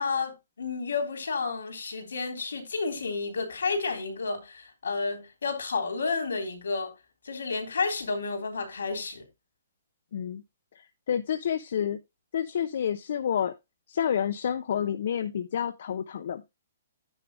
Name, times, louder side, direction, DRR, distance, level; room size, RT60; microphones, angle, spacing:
voice 1, 0.0-6.9 7.2-9.2, left 4 dB, 85° left, 3.4 m, -31 dB
voice 2, 10.1-10.4 10.7-12.0 12.3-13.5 13.9-16.4, left 8 dB, 65° left, 0.8 m, -29 dB
9.9 x 3.3 x 6.1 m
hypercardioid pair, 135°, 0 cm